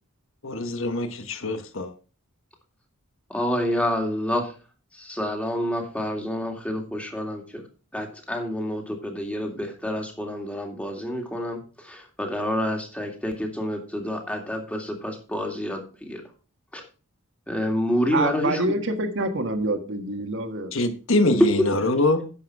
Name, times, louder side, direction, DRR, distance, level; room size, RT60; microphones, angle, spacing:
voice 1, 0.4-1.9 20.7-22.3, left 2 dB, 65° left, 1.3 m, -24 dB
voice 2, 3.3-4.5 4.9-7.6 7.9-16.2 16.7-16.8 17.5-18.8, left 1 dB, 5° left, 2.2 m, -28 dB
voice 3, 18.1-20.7, right 2 dB, 60° right, 1.6 m, -26 dB
10.5 x 7.2 x 4.7 m
head